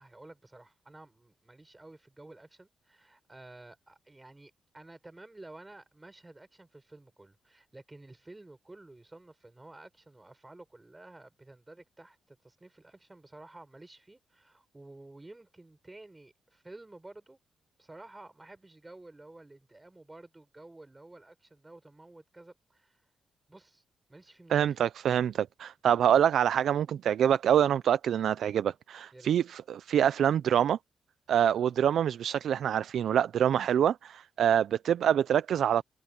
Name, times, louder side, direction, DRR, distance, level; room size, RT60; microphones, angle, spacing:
voice 1, 0.0-17.4 17.8-23.0 23.5-23.8 24.1-24.8 29.1-29.3, right 2 dB, 15° right, 5.8 m, -52 dB
voice 2, 24.5-30.8 31.3-35.8, right 9 dB, 75° right, 0.4 m, -26 dB
cardioid pair, 125°, 0 cm